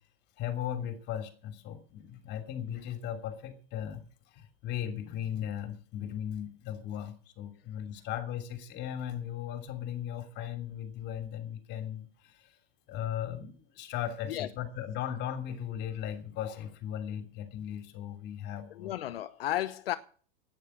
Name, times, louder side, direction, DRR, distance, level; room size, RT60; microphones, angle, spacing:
voice 1, 0.4-12.6 12.9-18.9, left 10 dB, 35° left, 3.2 m, -37 dB
voice 2, 18.7-20.0, left 13 dB, 75° left, 0.9 m, -33 dB
11.0 x 9.5 x 9.8 m
hypercardioid pair, 130°, 29 cm